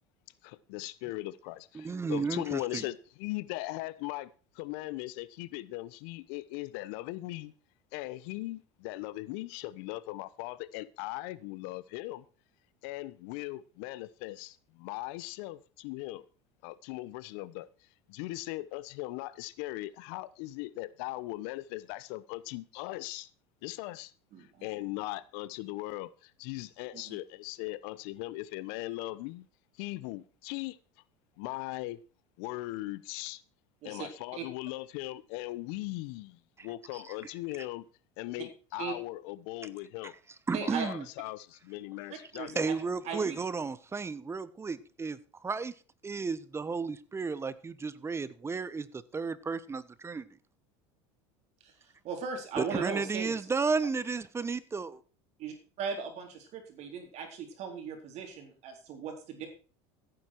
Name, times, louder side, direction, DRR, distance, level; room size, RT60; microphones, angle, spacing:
voice 1, 0.4-4.3 4.5-7.5 7.9-12.2 12.8-16.2 16.6-17.7 18.1-23.3 23.6-24.1 24.6-29.5 29.8-30.8 31.4-32.0 32.4-33.4 33.8-37.9 38.2-40.1 40.5-42.7, left 18 dB, 70° left, 0.9 m, -39 dB
voice 2, 1.7-2.9 36.6-36.7 36.9-37.1 40.5-41.1 42.5-45.7 46.0-48.9 49.1-50.3 52.6-55.0, right 4 dB, 20° right, 1.0 m, -33 dB
voice 3, 24.3-24.7 26.9-27.2 33.8-34.4 38.8-38.9 40.5-40.9 42.4-42.5 43.0-43.4 51.6-53.3 55.4-59.5, right 6 dB, 50° right, 4.2 m, -38 dB
15.0 x 9.1 x 4.6 m
supercardioid pair, 105°, 14 cm